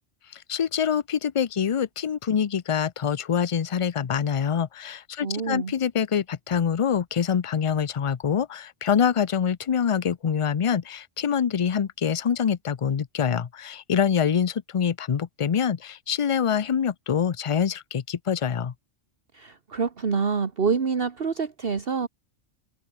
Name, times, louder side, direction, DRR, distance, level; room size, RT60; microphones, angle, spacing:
voice 1, 0.3-18.7, left 7 dB, 40° left, 0.4 m, -25 dB
voice 2, 5.2-5.7 19.3-22.1, right 5 dB, 50° right, 1.6 m, -26 dB
omnidirectional pair, 1.2 m